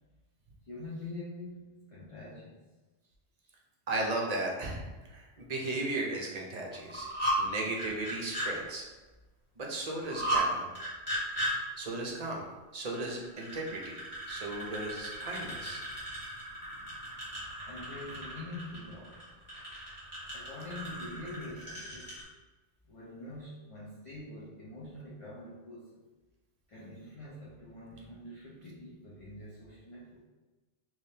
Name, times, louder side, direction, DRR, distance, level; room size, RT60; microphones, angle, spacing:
voice 1, 0.7-2.6 15.9-19.4 20.3-22.2 22.8-26.0 26.7-30.2, left 2 dB, 35° left, -8 dB, 0.7 m, -45 dB
voice 2, 3.9-4.8 5.1-7.1 7.4-8.8 9.6-10.6 11.8-12.5 12.7-14.0 14.3-15.8, right 2 dB, 45° right, -1 dB, 0.6 m, -35 dB
sound 1, 6.7-7.4 7.7-8.5 10.0-10.4 10.7-11.5 12.9-22.2, right 1 dB, 10° left, 1.5 m, -35 dB
3.5 x 3.1 x 2.8 m, 1.2 s
omnidirectional pair, 1.2 m